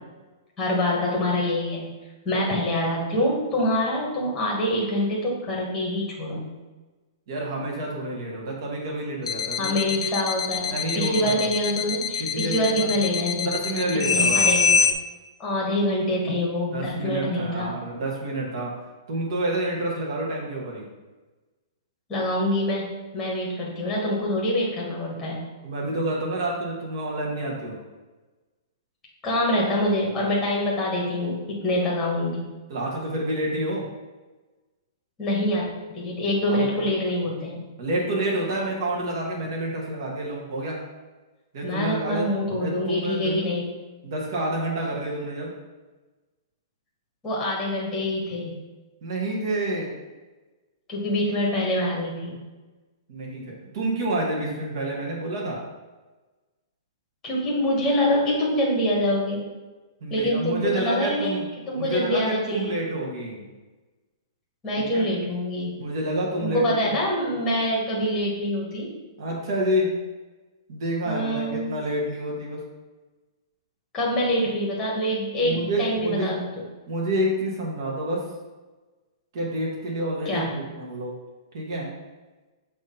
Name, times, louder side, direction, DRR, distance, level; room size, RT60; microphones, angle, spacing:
voice 1, 0.6-1.9 2.2-6.6 9.6-13.5 14.1-14.8 15.4-17.7 22.1-25.5 29.2-32.5 35.2-37.7 41.6-43.7 47.2-48.6 50.9-52.4 57.2-59.5 60.1-61.4 61.7-62.8 64.6-65.7 66.4-68.9 71.0-71.7 73.9-76.4 80.2-80.5, left 1 dB, 10° left, -4 dB, 1.2 m, -25 dB
voice 2, 7.3-9.8 10.7-11.5 12.2-12.9 13.4-14.4 16.7-18.8 19.1-20.9 25.6-27.8 32.7-33.8 36.5-36.8 37.8-40.8 41.5-42.3 42.6-43.4 44.0-45.5 49.0-49.9 53.1-55.6 60.0-61.4 61.7-63.4 64.8-65.0 65.8-66.9 69.2-69.9 70.7-72.6 75.4-76.4 76.9-78.2 79.3-81.1 81.5-81.9, right 1 dB, 45° right, -2 dB, 1.5 m, -28 dB
sound 1, 9.3-14.9, left 5 dB, 80° left, 0.5 m, -24 dB
6.2 x 2.9 x 5.2 m, 1.2 s
hypercardioid pair, 175°, 3 cm